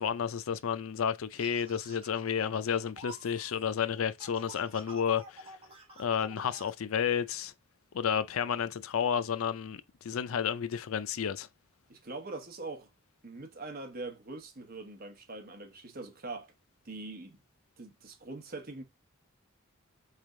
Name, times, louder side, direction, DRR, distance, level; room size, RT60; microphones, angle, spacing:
voice 1, 0.0-5.5 6.0-7.5 7.9-11.5, left 7 dB, 70° left, 0.4 m, -31 dB
sound 1, 1.3-6.7, right 2 dB, 25° right, 1.4 m, -50 dB
voice 2, 11.9-12.9 13.2-16.5 16.8-17.4 17.8-18.8, right 3 dB, 45° right, 1.0 m, -42 dB
4.3 x 3.3 x 3.6 m
head